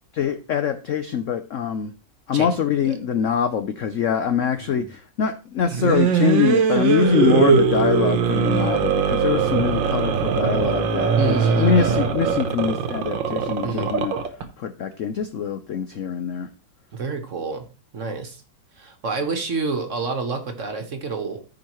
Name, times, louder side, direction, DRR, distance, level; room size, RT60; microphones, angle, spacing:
voice 1, 0.1-1.9 2.3-14.1 14.6-16.5, left 8 dB, 80° left, 0.7 m, -24 dB
sound 1, 5.7-14.4, right 6 dB, 80° right, 1.7 m, -21 dB
voice 2, 11.2-11.9 13.6-13.9 16.9-17.7 17.9-18.4 18.8-21.4, right 4 dB, 45° right, 1.3 m, -28 dB
14.5 x 5.0 x 3.0 m
omnidirectional pair, 2.1 m